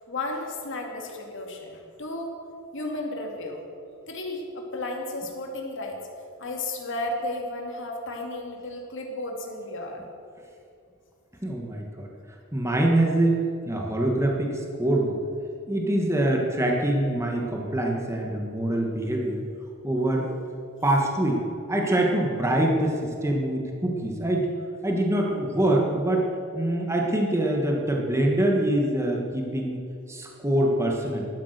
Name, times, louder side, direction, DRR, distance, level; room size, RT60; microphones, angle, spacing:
voice 1, 0.1-2.4 2.7-3.6 4.1-6.0 6.4-10.0, left 2 dB, 65° left, 1 dB, 2.4 m, -33 dB
voice 2, 11.4-12.1 12.5-15.3 15.7-19.4 19.8-20.3 20.8-21.4 21.7-24.5 24.8-26.3 26.5-29.8 30.1-31.3, right 1 dB, 15° right, 0 dB, 1.5 m, -24 dB
14.5 x 12.0 x 6.7 m, 2.5 s
head